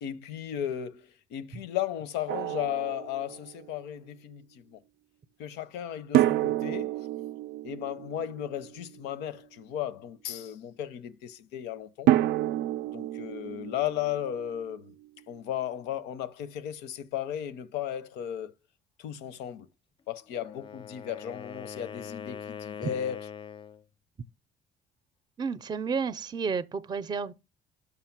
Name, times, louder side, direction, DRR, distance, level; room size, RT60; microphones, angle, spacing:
voice 1, 0.0-4.8 5.4-6.9 7.6-12.1 12.9-14.9 15.3-18.5 19.0-19.7 20.1-23.2, left 10 dB, 90° left, 0.7 m, -35 dB
Drum, 2.3-3.7 6.1-9.1 12.1-14.9, right 14 dB, 80° right, 0.4 m, -29 dB
Wind instrument woodwind instrument, 20.3-23.8, left 7 dB, 30° left, 0.4 m, -42 dB
voice 2, 25.4-27.3, right 5 dB, 25° right, 0.5 m, -31 dB
6.1 x 5.6 x 5.9 m
cardioid pair, 110°, 17 cm